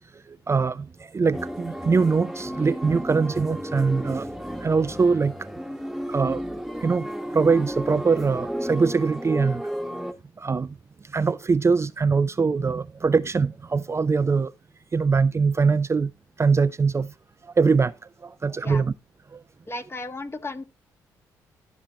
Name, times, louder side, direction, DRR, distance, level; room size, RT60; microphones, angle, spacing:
voice 1, 0.3-4.3 4.6-5.3 6.1-6.4 6.8-9.6 10.4-10.8 11.0-14.5 14.9-16.1 16.4-17.1 17.4-18.0 18.2-18.9 19.3-19.4, right 4 dB, 30° right, 0.5 m, -22 dB
sound 1, 1.3-10.1, equal, ahead, 1.4 m, -33 dB
voice 2, 19.7-20.7, left 2 dB, 30° left, 1.6 m, -34 dB
12.0 x 6.0 x 4.2 m
hypercardioid pair, 45°, 9 cm